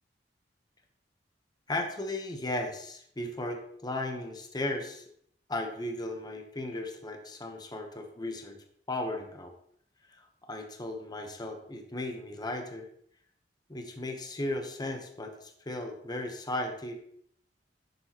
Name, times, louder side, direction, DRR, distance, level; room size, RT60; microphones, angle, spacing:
voice 1, 1.7-5.0 5.5-8.6 8.9-9.5 10.2-12.9 13.7-17.0, left 1 dB, 25° left, 4 dB, 0.9 m, -36 dB
10.0 x 6.7 x 2.9 m, 0.67 s
head